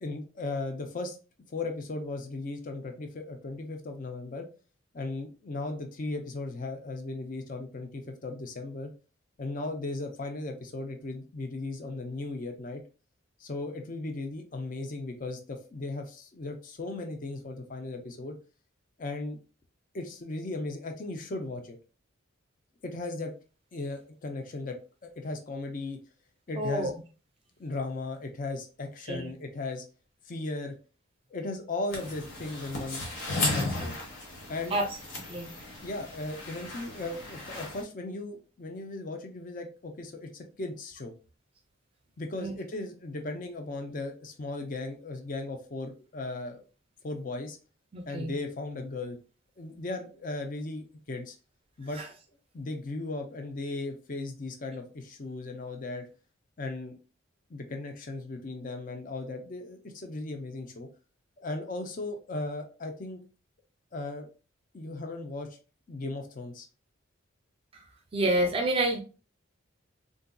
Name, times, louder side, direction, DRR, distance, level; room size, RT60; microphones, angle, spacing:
voice 1, 0.0-1.2 1.5-4.5 4.9-8.9 9.4-12.8 13.4-18.4 19.0-19.4 19.9-21.8 22.8-23.3 23.7-24.7 25.0-26.0 26.5-26.9 27.6-29.8 30.2-30.7 31.3-33.0 33.4-34.0 34.5-34.8 35.8-41.1 42.2-46.6 47.0-47.6 48.1-49.2 49.6-51.3 51.8-52.0 52.5-56.1 56.6-57.0 57.5-60.9 61.4-63.2 63.9-64.2 64.7-65.5 65.9-66.7, left 2 dB, 40° left, 5 dB, 0.5 m, -36 dB
voice 2, 26.6-26.9 29.1-29.3 34.7-34.9 35.3-35.5 42.4-42.5 47.9-48.3 68.1-69.0, right 1 dB, 25° right, 2 dB, 0.5 m, -28 dB
sound 1, 31.9-37.8, left 2 dB, 65° left, 1.1 m, -35 dB
3.6 x 2.6 x 2.2 m, 0.34 s
head